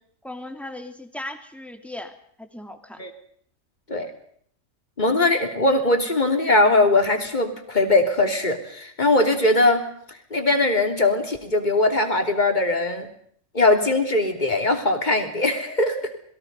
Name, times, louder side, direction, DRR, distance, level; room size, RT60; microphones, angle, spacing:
voice 1, 0.2-3.0, left 1 dB, ahead, 6 dB, 2.6 m, -37 dB
voice 2, 5.0-9.9 10.3-13.1 13.5-16.1, left 2 dB, 30° left, 5 dB, 3.1 m, -20 dB
28.0 x 21.5 x 5.4 m, 0.63 s
omnidirectional pair, 1.5 m